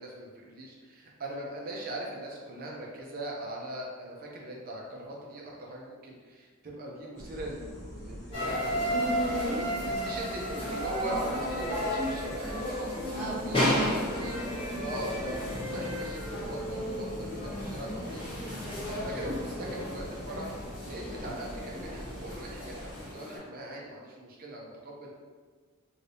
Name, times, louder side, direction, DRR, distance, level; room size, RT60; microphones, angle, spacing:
voice 1, 0.0-8.6 9.8-18.3 18.9-20.5 20.8-25.1, right 1 dB, 45° right, -2 dB, 0.6 m, -41 dB
sound 1, 7.2-23.1, equal, 60° left, 0.9 m, -44 dB
sound 2, 8.3-23.4, equal, 25° left, 1.0 m, -33 dB
voice 2, 9.0-9.6 13.1-14.0 19.1-19.2, right 2 dB, 5° right, -10 dB, 1.1 m, -38 dB
3.2 x 2.8 x 2.7 m, 1.5 s
head